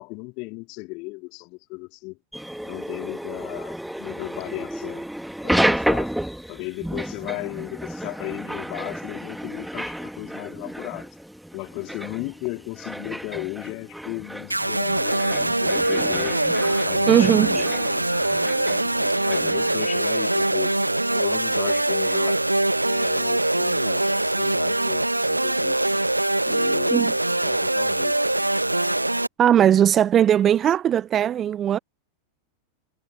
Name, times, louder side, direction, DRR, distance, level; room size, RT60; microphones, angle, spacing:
voice 1, 0.0-2.2 2.6-5.1 5.4-6.1 6.5-11.1 11.5-15.2 15.6-16.4 16.8-18.0 19.2-22.4 22.9-25.8 26.5-27.0 27.4-28.2, left 28 dB, 45° left, 3.6 m, -35 dB
sound 1, 2.3-19.9, equal, ahead, 2.2 m, -31 dB
sound 2, 14.5-29.3, right 1 dB, 85° right, 1.7 m, -23 dB
voice 2, 17.1-17.7 26.9-27.2 29.4-31.8, right 10 dB, 25° right, 0.5 m, -19 dB
figure-of-eight pair, 90°, 0 cm